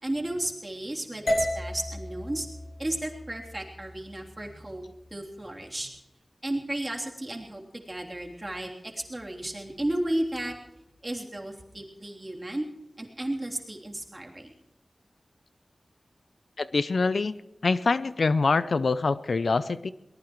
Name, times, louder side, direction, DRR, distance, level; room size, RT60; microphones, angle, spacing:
voice 1, 0.0-2.5 2.8-4.8 5.1-5.9 6.4-8.7 9.1-10.5 11.0-12.7 13.0-14.5, right 1 dB, 30° right, -1 dB, 3.3 m, -33 dB
sound 1, 1.3-5.4, left 1 dB, 50° left, 7.5 m, -34 dB
voice 2, 16.6-17.4 17.6-19.9, left 4 dB, 80° left, 15 dB, 0.5 m, -25 dB
22.5 x 19.0 x 3.1 m, 0.91 s
wide cardioid pair, 60°, 0 cm